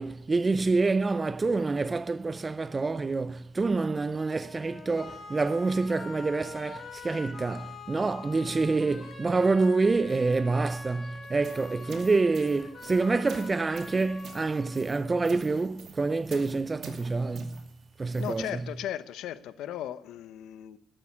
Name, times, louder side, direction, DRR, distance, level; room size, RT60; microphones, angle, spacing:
voice 1, 0.0-17.6 18.0-18.6, right 3 dB, 25° right, 0.5 m, -27 dB
sound 1, 4.4-15.4, left 4 dB, 45° left, 4.7 m, -45 dB
sound 2, 11.2-18.4, right 4 dB, 60° right, 2.4 m, -47 dB
voice 2, 18.1-20.8, left 11 dB, 85° left, 0.7 m, -36 dB
14.0 x 9.0 x 9.7 m
cardioid pair, 90°, 0 cm